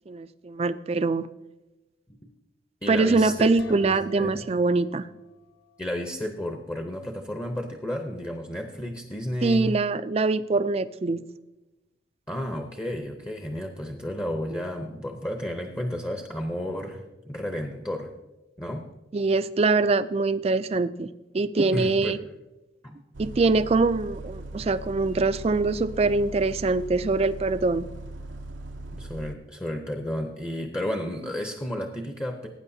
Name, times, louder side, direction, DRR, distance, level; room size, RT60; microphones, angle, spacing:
voice 1, 0.1-1.3 2.9-5.1 9.4-11.2 19.1-21.1 21.3-22.2 23.2-27.9, right 3 dB, 35° right, 14 dB, 0.3 m, -23 dB
voice 2, 2.8-3.5 3.8-4.5 5.8-9.8 12.3-18.1 18.6-18.9 21.7-22.2 22.8-23.0 28.9-32.5, equal, 15° left, 4 dB, 0.7 m, -32 dB
sound 1, 3.6-6.3, equal, 85° left, 0.9 m, -46 dB
Bus, 23.1-29.4, right 1 dB, 90° right, 0.6 m, -39 dB
18.5 x 9.1 x 2.7 m, 1.0 s
head